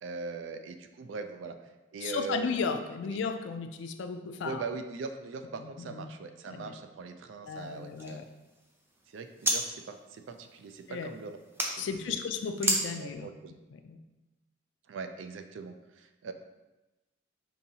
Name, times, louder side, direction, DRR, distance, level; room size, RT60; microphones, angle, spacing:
voice 1, 0.0-2.5 3.1-3.2 4.4-8.2 9.1-11.4 11.8-12.2 13.0-13.5 14.9-16.3, right 5 dB, 70° right, 7 dB, 0.4 m, -41 dB
voice 2, 2.0-4.6 5.8-6.1 6.5-6.7 7.5-8.2 10.9-11.1 11.7-13.3 13.9-14.0, left 5 dB, 65° left, 7 dB, 0.3 m, -34 dB
Pocket-Knife, 7.5-9.6 9.9-11.7 12.6-12.8, right 1 dB, 10° right, 0.5 m, -34 dB
5.4 x 2.7 x 2.7 m, 1.1 s
head